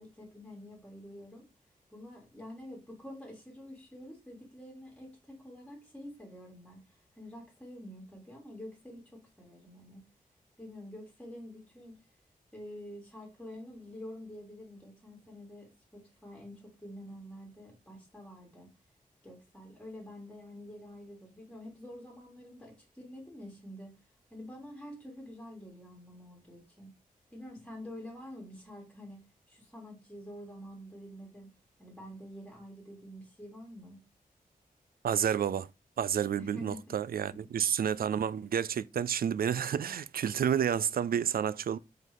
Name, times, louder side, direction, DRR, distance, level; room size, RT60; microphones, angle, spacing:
voice 1, 0.0-1.5 1.9-6.8 7.2-10.0 10.6-12.0 12.5-18.7 19.2-23.9 24.3-26.9 27.3-29.2 29.5-31.5 31.8-34.0 36.4-37.0 37.3-37.4 37.9-38.2, left 1 dB, 5° left, 2.8 m, -47 dB
voice 2, 35.0-35.7 36.0-41.8, right 8 dB, 85° right, 0.4 m, -30 dB
5.2 x 4.0 x 5.3 m
wide cardioid pair, 90°, 15 cm